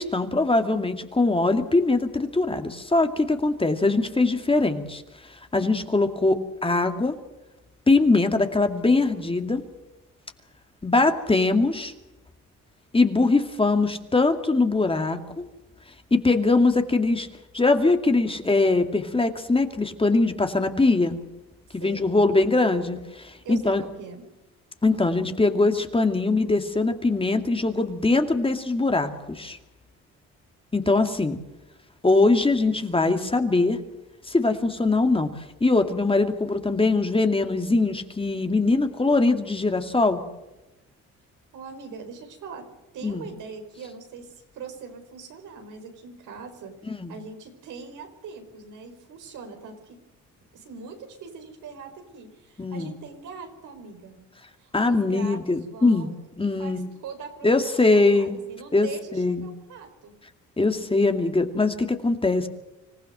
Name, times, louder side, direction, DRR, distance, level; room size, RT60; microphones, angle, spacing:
voice 1, 0.0-5.0 5.3-7.2 7.9-9.6 10.8-11.9 12.9-15.4 16.1-17.3 17.5-21.2 21.7-23.8 24.8-29.6 30.7-31.4 32.0-33.8 34.3-35.3 35.6-40.2 43.0-43.3 47.0-47.1 52.6-52.9 54.7-56.1 56.4-56.9 57.4-58.4 58.7-59.4 60.6-62.5, left 3 dB, 20° left, 6 dB, 2.3 m, -22 dB
voice 2, 21.8-22.2 23.4-24.2 41.5-42.7 42.9-46.7 47.1-50.0 50.5-54.2 54.6-60.1, right 5 dB, 85° right, 5 dB, 4.9 m, -42 dB
26.0 x 15.5 x 7.9 m, 1.0 s
cardioid pair, 90°, 30 cm